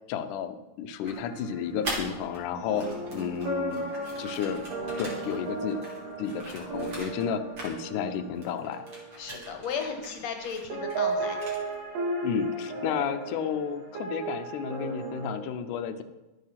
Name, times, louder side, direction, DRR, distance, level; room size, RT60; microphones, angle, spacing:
voice 1, 0.1-2.9 3.1-3.9 4.2-4.6 5.0-5.8 6.2-8.9 12.2-16.0, left 7 dB, 75° left, 10 dB, 2.1 m, -32 dB
sound 1, 1.0-10.4 10.7-15.4, right 2 dB, 80° right, 3.9 m, -35 dB
cassette manipulations, 1.1-2.4 2.7-7.3 7.5-8.2 8.4-11.8, right 1 dB, 35° right, 3.3 m, -42 dB
voice 2, 9.2-11.4, left 6 dB, 60° left, 5 dB, 2.2 m, -35 dB
12.5 x 8.6 x 5.7 m, 1.1 s
omnidirectional pair, 3.9 m